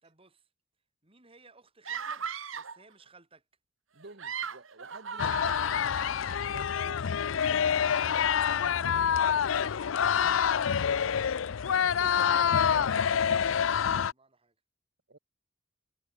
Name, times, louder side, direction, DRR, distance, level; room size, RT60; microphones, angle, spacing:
voice 1, 0.0-0.5 1.0-2.2 2.5-3.4 5.6-5.9 7.3-7.6 8.0-11.2 13.2-14.5, right 3 dB, 30° right, 3.1 m, -60 dB
sound 1, 1.8-2.8 4.0-6.4, right 6 dB, 85° right, 1.7 m, -38 dB
voice 2, 3.9-6.1 6.5-7.1 11.8-12.4 12.7-13.4 15.1-15.2, right 2 dB, 55° right, 1.7 m, -52 dB
sound 2, 5.2-14.1, left 8 dB, 80° left, 0.5 m, -27 dB
head